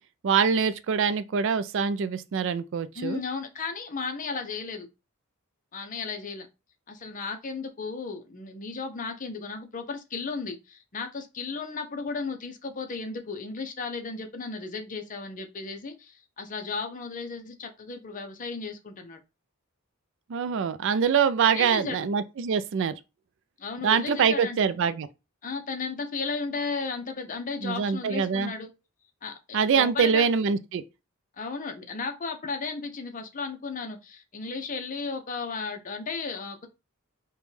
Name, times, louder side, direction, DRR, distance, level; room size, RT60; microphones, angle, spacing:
voice 1, 0.2-3.2 20.3-22.9 23.8-25.1 27.6-28.5 29.5-30.8, right 6 dB, 60° right, 0.4 m, -24 dB
voice 2, 2.9-4.9 5.7-6.5 6.9-19.2 21.4-22.1 23.6-24.6 25.4-28.7 29.2-30.3 31.4-36.7, left 4 dB, 40° left, 0.6 m, -35 dB
5.1 x 2.2 x 3.2 m
head